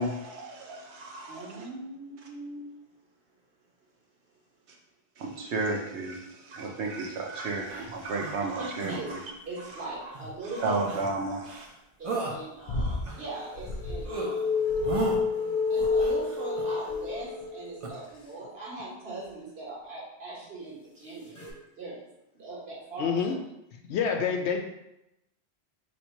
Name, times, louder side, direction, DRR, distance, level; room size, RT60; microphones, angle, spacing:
voice 1, 0.0-1.5 5.2-6.2 6.5-9.0 10.6-11.6, right 2 dB, 85° right, 1 dB, 1.0 m, -32 dB
voice 2, 1.3-2.7 8.6-9.2 9.5-10.9 12.0-14.8 15.7-21.4 21.8-22.0 22.3-23.2, right 2 dB, 65° right, -6 dB, 1.6 m, -40 dB
sound 1, 7.7-8.3 8.8-9.0 10.1-10.3 10.8-11.1 11.4-11.7 12.0-12.4 12.9-13.7 14.0-14.3 14.8-15.2 15.7-16.7 17.8-17.9, right 3 dB, 40° right, 0.6 m, -35 dB
sound 2, 12.7-13.1 13.5-14.1 14.7-15.3 15.8-16.3 16.9-17.2 17.9-18.3 19.2-19.3, left 1 dB, 55° left, 0.5 m, -35 dB
sound 3, 13.4-18.1 21.4-21.5, left 4 dB, 15° left, 0.8 m, -29 dB
voice 3, 23.0-23.3 23.9-24.6, left 6 dB, 80° left, 4 dB, 0.9 m, -27 dB
3.2 x 2.7 x 4.4 m, 0.87 s
omnidirectional pair, 1.1 m